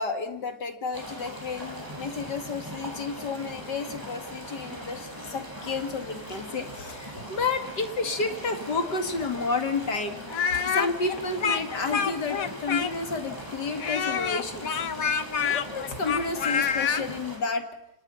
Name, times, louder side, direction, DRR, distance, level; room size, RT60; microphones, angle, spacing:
voice 1, 0.0-10.2 10.5-14.7 15.0-17.7, left 4 dB, 35° left, 7 dB, 2.6 m, -31 dB
sound 1, 0.9-17.4, equal, 5° right, 7.4 m, -40 dB
Speech, 10.3-13.2 13.8-17.0, left 7 dB, 80° left, 0.7 m, -27 dB
28.5 x 28.0 x 5.7 m, 0.76 s
omnidirectional pair, 3.3 m